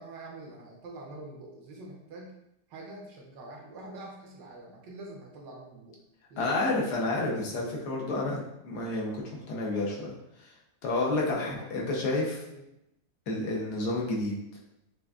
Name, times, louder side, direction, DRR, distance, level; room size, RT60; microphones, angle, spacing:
voice 1, 0.0-2.3 2.7-6.0 6.3-6.6 11.1-11.7 12.4-12.6, right 2 dB, 80° right, -2 dB, 1.5 m, -45 dB
voice 2, 6.4-9.2 9.5-10.5 10.8-12.4 13.3-14.3, left 2 dB, 70° left, -2 dB, 1.3 m, -30 dB
6.1 x 2.3 x 2.3 m, 0.82 s
omnidirectional pair, 1.9 m